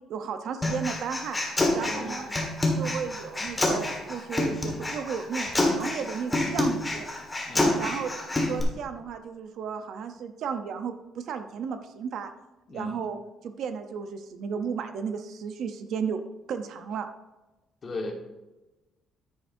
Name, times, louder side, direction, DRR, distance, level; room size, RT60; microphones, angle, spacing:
voice 1, 0.0-1.4 1.7-2.3 2.7-7.1 7.6-8.1 8.5-12.3 12.7-13.2 13.4-16.2 16.5-17.1, right 6 dB, 55° right, 8 dB, 0.6 m, -34 dB
Human voice, 0.6-8.6, left 1 dB, 10° left, 1.5 m, -27 dB
voice 2, 1.8-2.5 7.5-7.8 12.7-12.9 17.8-18.1, left 2 dB, 30° left, 2 dB, 1.4 m, -36 dB
10.0 x 9.4 x 2.6 m, 1.1 s
cardioid pair, 175°, 0 cm